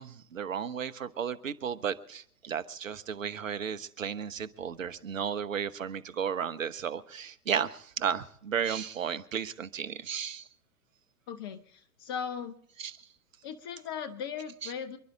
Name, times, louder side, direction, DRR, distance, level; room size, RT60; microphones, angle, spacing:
voice 1, 0.0-10.5 12.8-13.0 14.6-14.7, right 7 dB, 60° right, 14 dB, 1.2 m, -34 dB
voice 2, 11.3-12.6 13.4-15.0, left 7 dB, 15° left, 10 dB, 0.5 m, -38 dB
28.0 x 11.5 x 3.7 m, 0.63 s
figure-of-eight pair, 115°, 44 cm